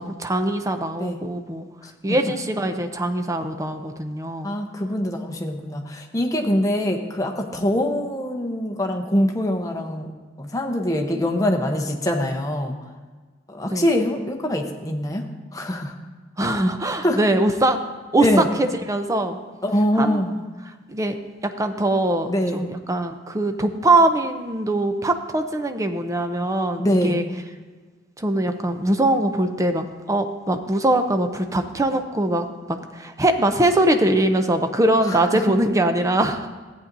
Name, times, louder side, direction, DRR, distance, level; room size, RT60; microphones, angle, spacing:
voice 1, 0.0-1.7 2.0-4.6 13.7-13.9 16.4-17.8 18.1-19.4 20.0-20.2 20.9-21.1 21.4-27.2 28.2-36.5, right 1 dB, 15° right, 7 dB, 0.6 m, -22 dB
voice 2, 4.4-10.1 10.4-12.7 13.5-15.2 15.5-15.9 17.0-17.2 18.2-18.5 19.6-20.4 22.2-22.6 26.8-27.2 35.0-35.4, equal, 20° left, 3 dB, 0.9 m, -23 dB
14.0 x 8.6 x 2.7 m, 1.4 s
head